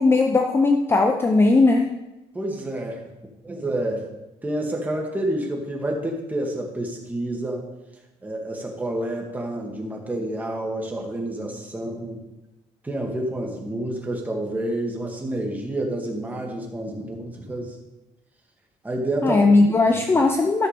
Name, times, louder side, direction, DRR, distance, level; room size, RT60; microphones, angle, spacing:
voice 1, 0.0-1.9 19.2-20.7, left 3 dB, 20° left, 4 dB, 0.7 m, -18 dB
voice 2, 2.3-3.0 3.4-4.0 4.4-7.7 8.2-12.2 12.8-17.8 18.8-19.4 19.8-20.1, right 1 dB, 10° right, 0 dB, 2.1 m, -29 dB
13.5 x 6.5 x 5.2 m, 1.0 s
cardioid pair, 140°, 13 cm